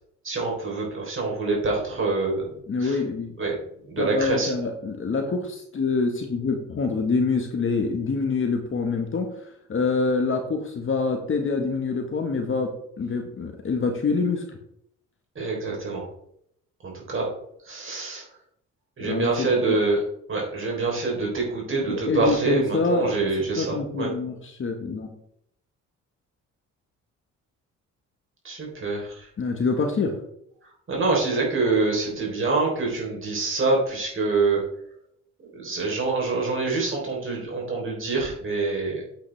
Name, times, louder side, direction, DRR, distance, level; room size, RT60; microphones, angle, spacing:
voice 1, 0.2-2.5 2.8-3.0 3.4-3.6 3.9-4.5 15.4-16.0 16.8-17.3 17.7-18.3 19.0-20.0 20.3-24.1 28.4-29.3 30.9-34.6 35.5-39.0, right 3 dB, 40° right, -2 dB, 3.6 m, -25 dB
voice 2, 2.7-3.4 4.0-9.3 9.7-14.4 19.0-19.8 21.7-23.1 23.6-25.1 29.4-30.2, left 4 dB, 40° left, 4 dB, 1.4 m, -26 dB
8.6 x 8.2 x 3.4 m, 0.71 s
cardioid pair, 90°, 30 cm